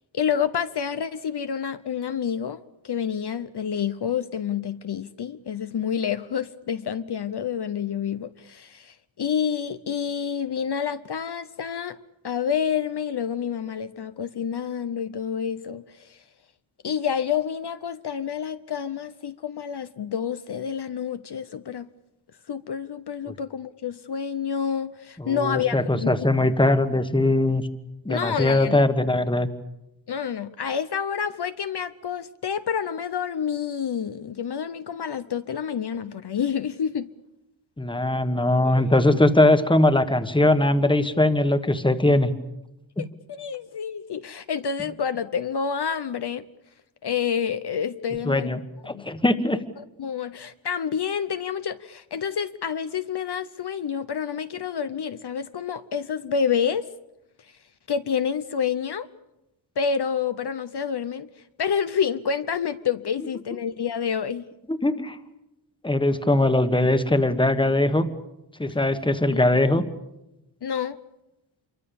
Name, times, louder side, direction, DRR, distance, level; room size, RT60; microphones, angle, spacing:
voice 1, 0.1-12.0 12.2-16.2 16.8-21.9 22.5-26.3 28.1-28.8 30.1-37.1 38.6-39.0 43.0-46.5 47.0-48.6 48.9-49.1 49.8-56.9 57.4-57.6 57.9-59.1 59.8-61.3 61.6-64.5 69.3-69.4 70.6-71.0, left 7 dB, 60° left, 0.8 m, -28 dB
voice 2, 25.2-27.7 28.0-29.5 37.8-42.3 43.0-43.1 48.2-49.6 64.7-65.2 65.8-68.1 68.6-69.8, left 1 dB, 10° left, 1.4 m, -21 dB
26.5 x 23.5 x 7.0 m
wide cardioid pair, 135°, 46 cm